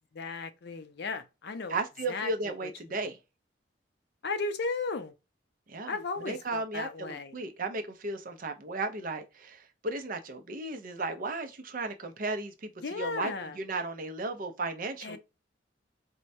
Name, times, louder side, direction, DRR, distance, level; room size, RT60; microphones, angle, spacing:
voice 1, 0.1-1.8 2.1-2.7 4.2-5.1 5.9-7.4 12.8-13.6 15.0-15.2, left 4 dB, 60° left, 0.5 m, -35 dB
voice 2, 1.7-3.2 5.7-15.2, right 3 dB, 45° right, 0.6 m, -35 dB
4.4 x 2.1 x 2.6 m
head